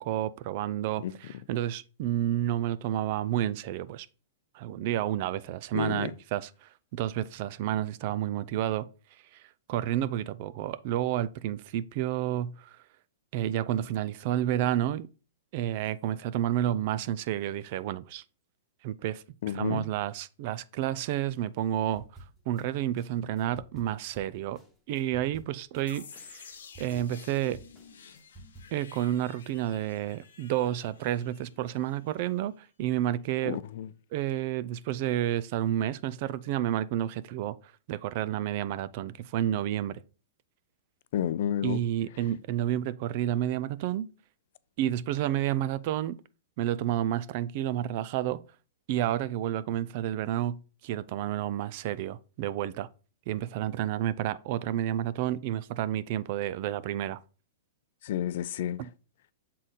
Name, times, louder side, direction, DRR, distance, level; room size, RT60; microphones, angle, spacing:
voice 1, 0.0-4.1 4.5-8.9 9.3-9.4 9.7-12.8 13.3-15.1 15.5-18.2 18.8-22.0 22.5-24.6 24.9-26.5 26.8-27.6 28.7-33.6 34.1-37.6 37.9-40.0 41.6-44.1 44.8-46.2 46.6-48.4 48.9-52.9 53.3-57.2 58.8-58.9, right 12 dB, 50° right, 0.4 m, -30 dB
voice 2, 5.7-6.1 19.4-19.8 33.5-33.9 41.1-41.8 58.0-58.8, left 10 dB, 60° left, 0.4 m, -30 dB
sound 1, 22.0-22.6 23.0-25.8 26.1-29.0, right 2 dB, ahead, 1.2 m, -52 dB
sound 2, 25.9-32.7, left 6 dB, 90° left, 1.0 m, -51 dB
6.5 x 3.8 x 4.1 m
hypercardioid pair, 140°, 0 cm